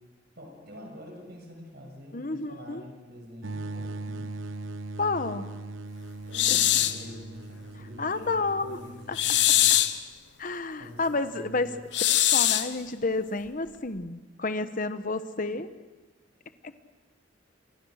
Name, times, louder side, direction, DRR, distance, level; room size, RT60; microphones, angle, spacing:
voice 1, 0.4-4.5 6.3-9.7 10.4-10.5 10.8-11.8, left 1 dB, 55° right, 1 dB, 7.2 m, -46 dB
voice 2, 2.1-2.8 5.0-5.5 6.5-6.6 8.0-8.8 9.1-9.2 10.4-11.7 12.1-15.7, left 3 dB, 45° left, 11 dB, 1.2 m, -30 dB
sound 1, 3.4-10.0, right 2 dB, 85° right, 0.9 m, -40 dB
sound 2, 6.3-7.0 9.1-10.0 11.9-12.7, left 12 dB, 60° left, 1.1 m, -22 dB
28.0 x 24.0 x 6.6 m, 1.2 s
head